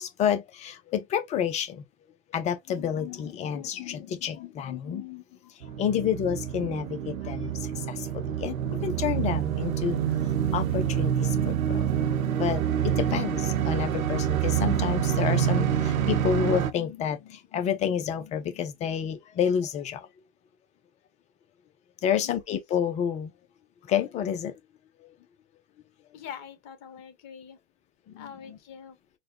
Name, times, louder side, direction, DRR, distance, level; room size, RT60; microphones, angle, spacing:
voice 1, 0.0-1.8 2.3-5.2 5.6-10.0 10.5-11.9 12.4-20.1 22.0-23.3 23.9-24.5 28.1-28.6, left 8 dB, 20° left, 0.4 m, -29 dB
sound 1, 5.6-16.7, right 9 dB, 85° right, 0.6 m, -27 dB
voice 2, 26.1-27.6 28.2-29.0, left 8 dB, 40° left, 1.2 m, -44 dB
3.9 x 2.1 x 3.0 m
hypercardioid pair, 105°, 40 cm